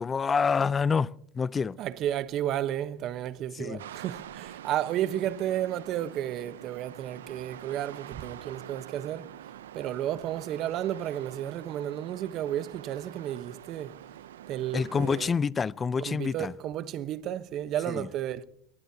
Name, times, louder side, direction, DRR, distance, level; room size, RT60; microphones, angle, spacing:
voice 1, 0.0-1.8 3.6-3.8 14.7-16.5 17.9-18.1, left 5 dB, 25° left, 0.5 m, -27 dB
voice 2, 1.8-9.3 9.7-14.0 14.5-15.3 16.0-18.4, right 11 dB, 50° right, 1.0 m, -32 dB
sound 1, 3.8-15.3, right 11 dB, 90° right, 0.6 m, -46 dB
23.0 x 19.5 x 2.9 m
hypercardioid pair, 95°, 0 cm